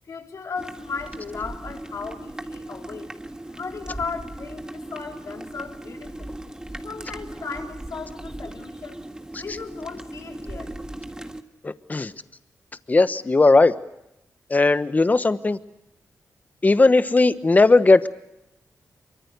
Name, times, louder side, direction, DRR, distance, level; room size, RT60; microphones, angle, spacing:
voice 1, 0.1-3.2 3.5-6.4 6.8-9.1 9.4-10.7, left 5 dB, 65° left, 2 dB, 3.9 m, -36 dB
sound 1, 0.5-11.4, right 1 dB, 15° right, 1.7 m, -38 dB
voice 2, 11.6-12.1 12.9-13.7 14.5-15.6 16.6-18.1, left 3 dB, 30° left, 12 dB, 1.1 m, -17 dB
23.5 x 23.5 x 6.7 m, 0.88 s
cardioid pair, 80°, 6 cm